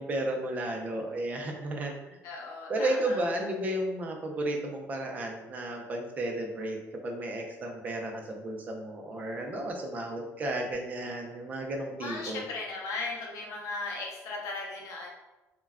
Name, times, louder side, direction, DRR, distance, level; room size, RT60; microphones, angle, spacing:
voice 1, 0.0-2.2 2.7-6.8 7.0-12.4, right 1 dB, 25° right, 2 dB, 0.4 m, -33 dB
voice 2, 2.2-3.3 12.0-15.1, left 3 dB, 60° left, -2 dB, 0.6 m, -37 dB
2.2 x 2.1 x 3.4 m, 1.0 s
cardioid pair, 170°, 6 cm